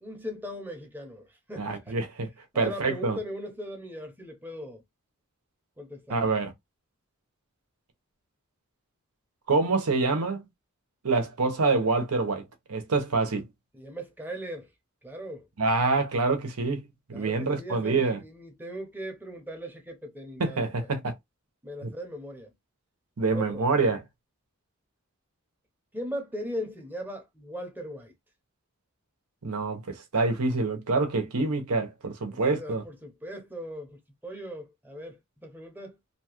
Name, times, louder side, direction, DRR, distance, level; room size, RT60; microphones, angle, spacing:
voice 1, 0.0-2.0 2.5-4.8 5.8-6.2 13.7-14.7 15.0-15.5 17.1-20.9 21.6-22.5 23.3-23.7 25.9-28.1 32.3-36.0, equal, 10° right, 0.7 m, -39 dB
voice 2, 1.6-2.3 2.5-3.2 6.1-6.5 9.5-10.4 11.0-12.4 12.7-13.5 15.6-16.8 17.1-18.2 20.4-21.1 21.8-21.9 23.2-24.0 29.4-32.8, right 3 dB, 85° right, 0.8 m, -26 dB
2.8 x 2.3 x 2.9 m
head